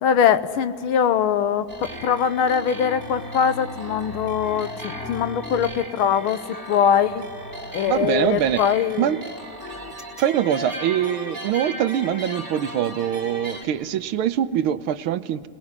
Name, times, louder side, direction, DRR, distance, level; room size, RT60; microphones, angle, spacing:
voice 1, 0.0-6.4 6.7-7.3 7.7-9.1, left 8 dB, 90° left, 12 dB, 1.8 m, -22 dB
sound 1, 1.7-13.6, equal, 10° right, 3.1 m, -36 dB
voice 2, 7.9-8.6 9.0-9.2 10.2-15.5, right 10 dB, 90° right, 12 dB, 1.7 m, -23 dB
29.5 x 20.5 x 9.7 m, 2.7 s
omnidirectional pair, 2.3 m